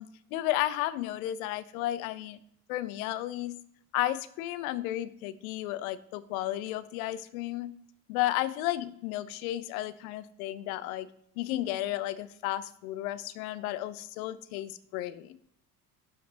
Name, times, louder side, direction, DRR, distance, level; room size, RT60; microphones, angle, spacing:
voice 1, 0.0-2.4 2.7-3.6 3.9-7.7 8.1-15.4, left 14 dB, 65° left, 15 dB, 0.8 m, -33 dB
11.5 x 5.2 x 3.9 m, 0.71 s
figure-of-eight pair, 65°, 46 cm